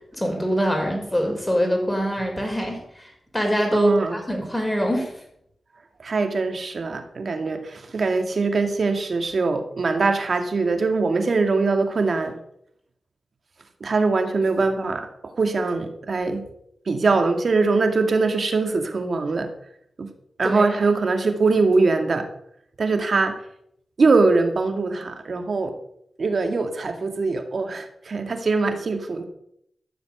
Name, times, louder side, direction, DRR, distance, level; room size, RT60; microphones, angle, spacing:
voice 1, 0.1-5.1 20.4-20.7, equal, 10° left, 2 dB, 5.8 m, -24 dB
voice 2, 3.7-4.2 6.0-12.4 13.8-16.4 16.9-19.5 20.0-20.1 20.4-22.3 22.8-23.3 24.0-25.7 26.2-29.2, right 3 dB, 65° right, 6 dB, 2.1 m, -22 dB
14.0 x 7.2 x 6.7 m, 0.73 s
cardioid pair, 40°, 0 cm